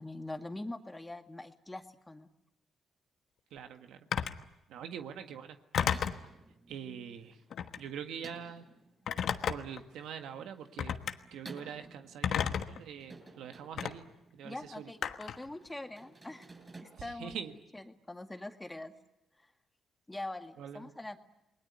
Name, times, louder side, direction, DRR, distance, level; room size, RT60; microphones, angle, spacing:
voice 1, 0.0-2.3 14.4-16.5 16.8-17.4 17.7-18.9 19.4-19.5 20.1-21.2, left 2 dB, 15° left, 6 dB, 2.0 m, -43 dB
voice 2, 3.5-4.1 4.7-5.6 6.7-7.4 7.7-8.7 9.5-11.0 11.3-14.0 14.3-14.9 17.0-17.5 20.6-20.9, right 8 dB, 85° right, 7 dB, 1.7 m, -44 dB
Telephone, 4.1-4.4 5.7-6.2 7.5-7.9 9.1-9.8 10.8-11.1 12.2-12.8 13.8-13.9 15.0-15.4, left 8 dB, 70° left, 1.3 m, -32 dB
sound 1, 5.9-16.8, right 3 dB, 25° right, 7.3 m, -54 dB
28.5 x 20.5 x 9.4 m, 0.88 s
cardioid pair, 80°, 0 cm